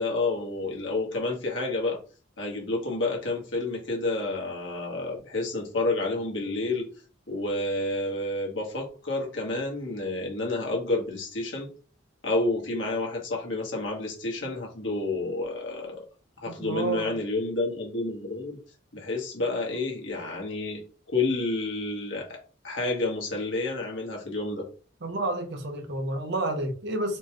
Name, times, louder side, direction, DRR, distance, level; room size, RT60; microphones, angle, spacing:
voice 1, 0.0-2.0 2.4-6.9 7.3-11.7 12.2-16.0 16.4-18.6 18.9-24.7, left 2 dB, 70° left, 1.4 m, -29 dB
voice 2, 16.5-17.2 25.0-27.2, right 2 dB, 60° right, 0.7 m, -30 dB
4.3 x 2.2 x 3.0 m
head